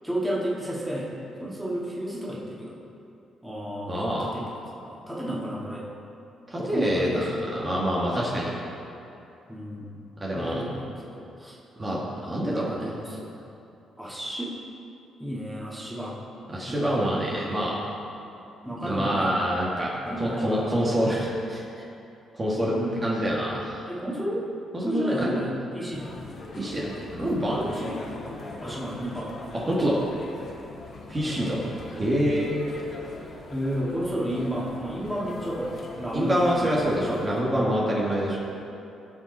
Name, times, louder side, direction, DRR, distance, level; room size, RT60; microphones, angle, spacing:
voice 1, 0.0-1.1 1.4-2.8 3.4-4.4 4.8-5.8 6.6-7.4 9.5-10.0 10.3-11.6 12.4-13.3 14.0-14.5 15.2-16.2 16.7-17.0 18.6-19.3 19.9-20.7 22.6-23.0 23.9-24.4 24.8-26.1 27.6-28.0 28.6-29.4 31.3-31.7 33.5-36.3 36.6-37.2, equal, 5° right, -6 dB, 2.5 m, -32 dB
voice 2, 3.9-4.3 6.5-7.1 7.5-8.5 10.2-10.6 11.8-12.7 16.5-17.8 18.7-19.9 20.2-21.6 22.3-22.7 23.0-23.8 24.9-25.3 26.6-26.9 27.2-27.6 29.5-30.0 31.1-31.6 32.0-32.5 36.1-38.4, equal, 30° right, -6 dB, 2.2 m, -26 dB
sound 1, 25.9-37.4, left 2 dB, 50° left, 2.0 m, -41 dB
18.0 x 6.2 x 4.3 m, 2.7 s
cardioid pair, 90°, 0 cm